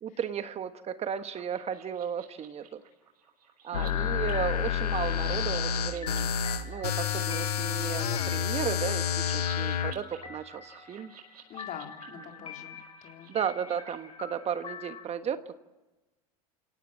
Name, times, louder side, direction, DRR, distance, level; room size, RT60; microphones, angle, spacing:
voice 1, 0.0-2.8 3.6-6.3 6.6-11.1 13.3-15.6, right 8 dB, 35° right, 11 dB, 1.3 m, -34 dB
sound 1, 1.2-13.9, right 7 dB, 80° right, 7.2 m, -53 dB
sound 2, 3.7-9.9, left 8 dB, 85° left, 1.3 m, -29 dB
voice 2, 3.7-4.6 11.5-13.3, left 8 dB, 45° left, 4 dB, 3.8 m, -46 dB
sound 3, 4.3-15.0, left 6 dB, 30° left, 4.6 m, -46 dB
29.0 x 18.0 x 7.4 m, 1.1 s
hypercardioid pair, 95°, 19 cm